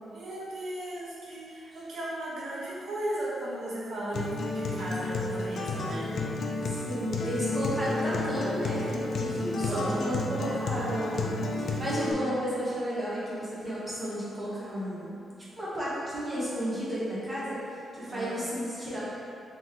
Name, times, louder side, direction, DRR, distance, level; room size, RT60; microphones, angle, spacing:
voice 1, 0.1-6.2 9.6-10.3 18.1-18.4, right 1 dB, 85° right, -7 dB, 1.1 m, -36 dB
Acoustic guitar, 4.1-12.1, left 2 dB, 55° left, 0.4 m, -31 dB
voice 2, 6.6-15.2 15.6-19.0, equal, 20° right, -9 dB, 1.2 m, -33 dB
4.2 x 3.5 x 3.0 m, 2.5 s
wide cardioid pair, 160°, 0 cm